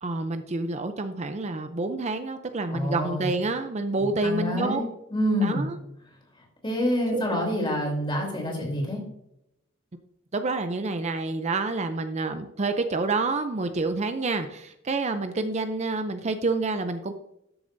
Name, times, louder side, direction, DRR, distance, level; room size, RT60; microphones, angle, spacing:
voice 1, 0.0-4.8 5.4-5.8 7.1-7.5 10.3-17.1, right 3 dB, 35° right, 8 dB, 0.5 m, -28 dB
voice 2, 2.7-3.3 4.0-4.8 5.1-5.7 6.6-9.0, left 1 dB, 25° left, 0 dB, 3.5 m, -27 dB
13.0 x 7.0 x 2.6 m, 0.80 s
head